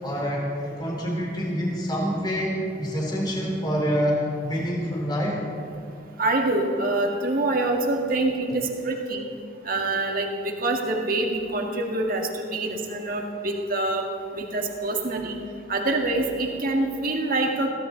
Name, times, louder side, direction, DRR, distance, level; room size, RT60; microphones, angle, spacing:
voice 1, 0.0-4.2 4.4-5.4, equal, 20° left, -2 dB, 3.4 m, -26 dB
voice 2, 6.2-9.3 9.7-14.0 14.3-15.4 15.7-17.7, right 2 dB, 50° right, 1 dB, 2.0 m, -25 dB
22.5 x 16.0 x 4.0 m, 2.5 s
head